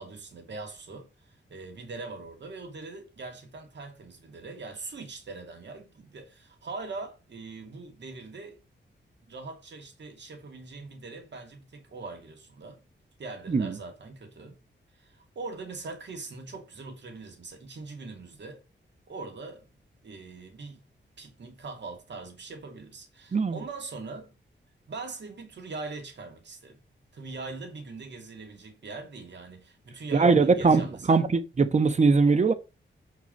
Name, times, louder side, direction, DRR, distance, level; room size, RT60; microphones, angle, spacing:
voice 1, 0.0-8.6 9.2-12.8 13.2-14.6 15.0-18.6 19.1-19.7 20.0-20.8 21.2-24.3 24.9-26.8 27.1-31.3, right 3 dB, 65° right, 2.8 m, -41 dB
voice 2, 23.3-23.6 30.1-32.5, right 4 dB, 35° right, 1.1 m, -21 dB
7.5 x 5.8 x 5.3 m
wide cardioid pair, 175°, 20 cm